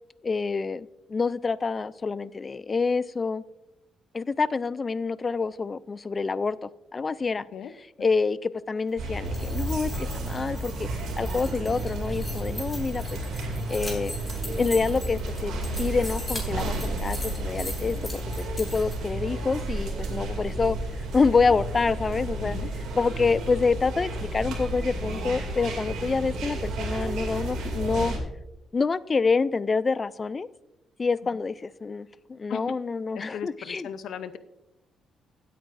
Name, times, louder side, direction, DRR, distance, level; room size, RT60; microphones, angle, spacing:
voice 1, 0.2-3.4 4.1-7.4 8.0-10.9 11.2-13.2 13.7-14.1 14.6-15.5 15.8-20.8 21.1-22.6 22.9-28.1 28.7-30.5 31.0-33.9, left 4 dB, 30° left, 18 dB, 0.4 m, -27 dB
sound 1, 9.0-28.2, right 1 dB, 80° right, 2.5 m, -32 dB
sound 2, 9.1-18.9, left 1 dB, 10° left, 3.8 m, -41 dB
voice 2, 33.1-34.4, left 9 dB, 75° left, 12 dB, 0.7 m, -37 dB
16.0 x 8.6 x 2.6 m, 0.91 s
cardioid pair, 90°, 0 cm